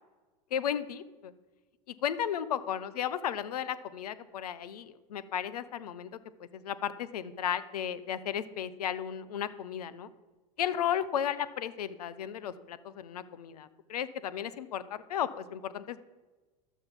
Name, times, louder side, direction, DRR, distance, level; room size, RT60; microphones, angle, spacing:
voice 1, 0.5-1.3 2.0-6.1 6.4-10.1 10.6-16.0, left 9 dB, 85° left, 14 dB, 0.7 m, -34 dB
12.0 x 7.1 x 5.3 m, 1.2 s
hypercardioid pair, 90°, 19 cm